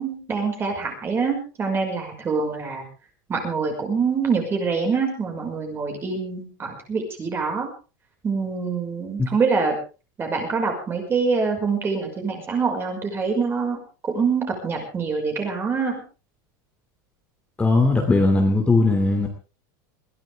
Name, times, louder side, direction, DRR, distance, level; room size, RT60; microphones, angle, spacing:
voice 1, 0.0-2.8 3.3-7.7 8.2-9.8 10.2-13.8 14.1-16.0, right 5 dB, 20° right, 3 dB, 5.7 m, -25 dB
voice 2, 17.6-19.3, left 2 dB, 10° left, 2 dB, 2.8 m, -18 dB
21.5 x 16.0 x 3.6 m, 0.34 s
supercardioid pair, 155°, 11 cm